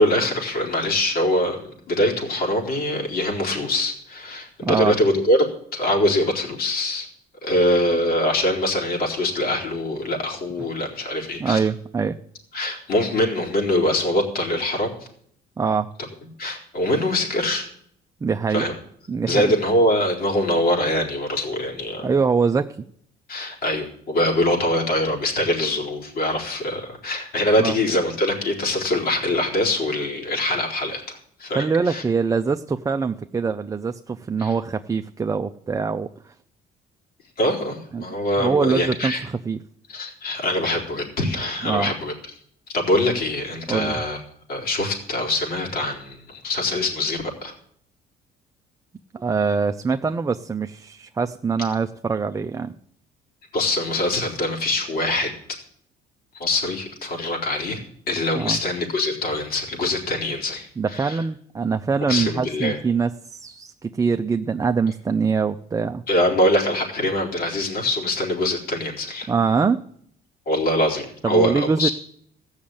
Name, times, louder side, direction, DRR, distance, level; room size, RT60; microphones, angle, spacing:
voice 1, 0.0-1.6 1.9-5.5 5.7-7.1 7.4-11.6 12.5-14.9 16.4-17.7 18.5-18.7 19.3-22.1 23.3-32.0 34.4-34.5 37.4-39.2 39.9-42.1 42.7-44.2 44.5-47.5 53.5-55.3 56.3-57.8 58.1-61.2 62.1-62.8 66.1-69.3 70.5-71.9, left 1 dB, 60° left, 0 dB, 4.2 m, -23 dB
voice 2, 4.6-5.0 11.4-12.2 15.6-15.9 18.2-18.7 19.1-19.6 22.0-22.9 27.6-27.8 31.5-36.3 37.9-38.0 38.4-39.6 41.6-41.9 43.7-44.0 49.1-52.7 58.3-58.6 60.8-66.0 69.3-69.8 71.2-71.9, right 5 dB, 20° right, 7 dB, 0.5 m, -23 dB
15.5 x 6.4 x 8.8 m, 0.66 s
cardioid pair, 110°, 17 cm